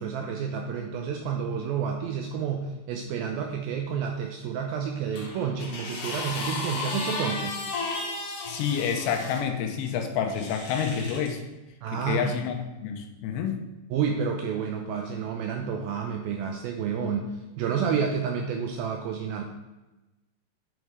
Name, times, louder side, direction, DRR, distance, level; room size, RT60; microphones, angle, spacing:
voice 1, 0.0-7.6 11.8-12.3 13.9-19.4, right 6 dB, 85° right, 3 dB, 2.1 m, -30 dB
sound 1, 5.1-9.4 10.3-11.3 12.2-12.4, left 3 dB, 55° left, 1.7 m, -34 dB
voice 2, 8.5-11.4 11.9-12.6 12.8-13.6, left 7 dB, 85° left, 4 dB, 3.2 m, -28 dB
9.2 x 5.5 x 4.8 m, 1.1 s
omnidirectional pair, 4.9 m